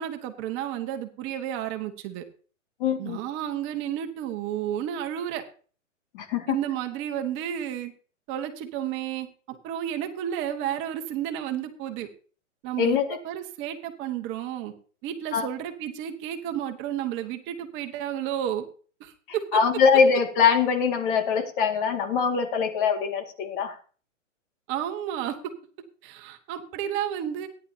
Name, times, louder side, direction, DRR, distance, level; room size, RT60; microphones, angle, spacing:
voice 1, 0.0-2.2 3.0-5.4 6.5-7.9 8.3-12.1 12.6-14.7 15.0-18.6 19.0-19.6 24.7-25.5 26.0-27.5, right 10 dB, 30° right, 6 dB, 1.6 m, -32 dB
voice 2, 2.8-3.2 6.1-6.6 12.8-13.2 15.3-15.5 19.5-23.8, left 6 dB, 45° left, 5 dB, 2.2 m, -23 dB
18.0 x 10.5 x 2.9 m, 0.40 s
hypercardioid pair, 130°, 38 cm